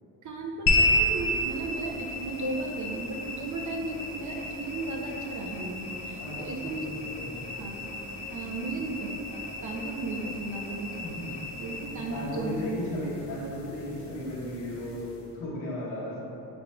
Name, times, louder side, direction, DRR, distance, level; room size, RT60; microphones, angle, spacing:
voice 1, 0.2-6.9 7.6-7.9 8.3-11.0 11.6-12.8, right 3 dB, 40° right, 1 dB, 0.6 m, -35 dB
sound 1, 0.7-15.3, left 1 dB, 55° left, 0.8 m, -33 dB
voice 2, 6.1-6.9 7.2-7.4 8.4-8.8 11.0-11.3 11.8-16.2, left 1 dB, 75° left, -7 dB, 1.5 m, -36 dB
5.3 x 4.1 x 2.3 m, 3.0 s
hypercardioid pair, 55°, 49 cm